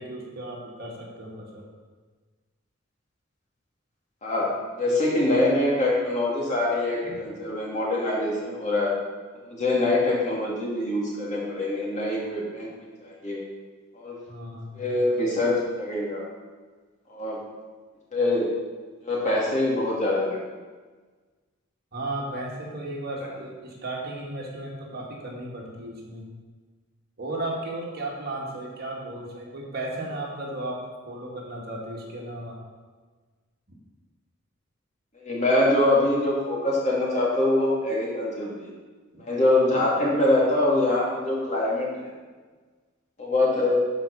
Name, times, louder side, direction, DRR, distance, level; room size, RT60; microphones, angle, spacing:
voice 1, 0.0-1.6 7.0-7.2 14.3-14.9 21.9-26.3 27.2-32.6 39.1-39.2, right 1 dB, 50° right, -3 dB, 2.1 m, -35 dB
voice 2, 4.2-8.9 9.5-13.4 13.9-14.2 14.7-16.2 17.1-17.4 18.1-18.5 19.0-20.4 35.2-38.7 39.2-42.1 43.2-43.7, left 2 dB, 35° left, -4 dB, 2.6 m, -24 dB
12.0 x 5.2 x 5.5 m, 1.4 s
head